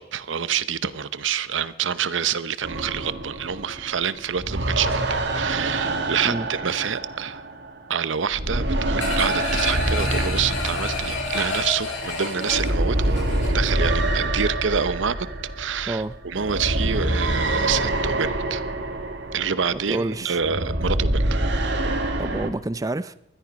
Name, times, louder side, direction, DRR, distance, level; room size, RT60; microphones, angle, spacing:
voice 1, 0.0-7.4 7.9-13.2 13.5-15.3 15.6-18.6 19.3-21.4, right 7 dB, 80° right, 0.8 m, -27 dB
sound 1, 2.6-8.0 8.3-22.5, right 1 dB, 65° right, 1.9 m, -26 dB
sound 2, 9.0-13.8 14.2-14.3, left 3 dB, 85° left, 6.6 m, -29 dB
voice 2, 19.7-20.4 22.2-23.1, right 2 dB, 20° right, 0.5 m, -28 dB
20.0 x 13.0 x 5.2 m
head